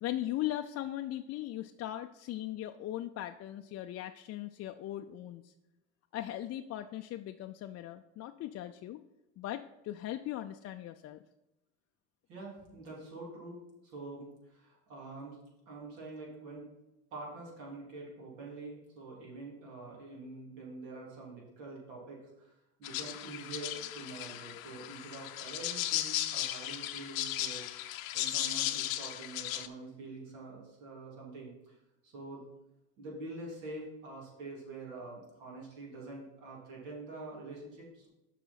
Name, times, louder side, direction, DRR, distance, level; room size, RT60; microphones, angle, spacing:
voice 1, 0.0-5.5 6.1-9.0 9.4-11.2, left 13 dB, 40° left, 6 dB, 0.4 m, -39 dB
voice 2, 12.3-15.4 15.7-16.7 17.1-22.5 22.8-31.8 32.0-32.4 33.0-38.1, right 2 dB, 75° right, -4 dB, 3.2 m, -46 dB
sound 1, 22.8-29.7, left 14 dB, 90° left, 0.7 m, -36 dB
7.0 x 5.0 x 5.8 m, 0.95 s
supercardioid pair, 90°, 40 cm